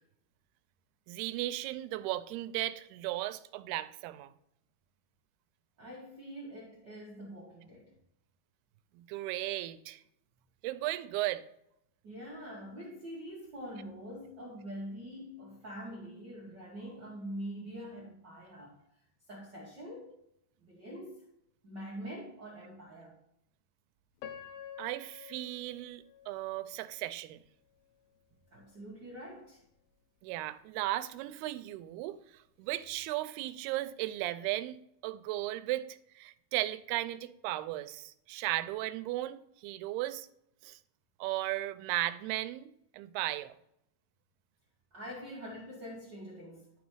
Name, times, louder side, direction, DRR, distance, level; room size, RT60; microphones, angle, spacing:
voice 1, 1.1-4.3 9.0-10.0 10.6-11.4 24.8-27.4 30.2-32.2 32.6-34.8 35.0-35.9 36.2-40.3 40.6-40.8 41.2-43.6, right 16 dB, 85° right, 2.5 m, -36 dB
voice 2, 5.8-7.9 12.0-18.8 19.3-20.2 20.6-21.2 21.6-23.1 28.5-29.6 44.9-46.7, equal, 65° right, 1.0 m, -44 dB
Piano, 24.2-27.2 27.8-27.9 28.5-28.8, left 9 dB, 75° left, 2.4 m, -49 dB
11.5 x 4.0 x 4.7 m
omnidirectional pair, 4.5 m